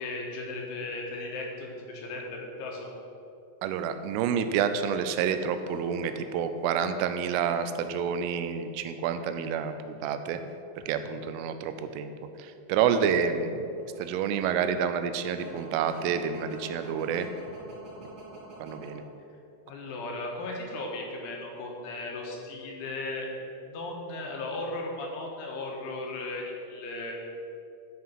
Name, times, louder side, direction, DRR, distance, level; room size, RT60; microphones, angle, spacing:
voice 1, 0.0-2.9 19.7-23.3 23.7-27.1, left 2 dB, 75° left, -1 dB, 3.7 m, -36 dB
voice 2, 3.6-10.4 10.9-12.1 12.4-13.6 14.0-17.3 18.6-19.0, right 7 dB, 90° right, 9 dB, 3.2 m, -28 dB
sound 1, 5.1-8.2 8.9-9.4 9.7-9.9 10.7-12.4 12.7-18.9, right 3 dB, 55° right, 4.1 m, -48 dB
12.0 x 5.7 x 5.7 m, 2.6 s
omnidirectional pair, 5.6 m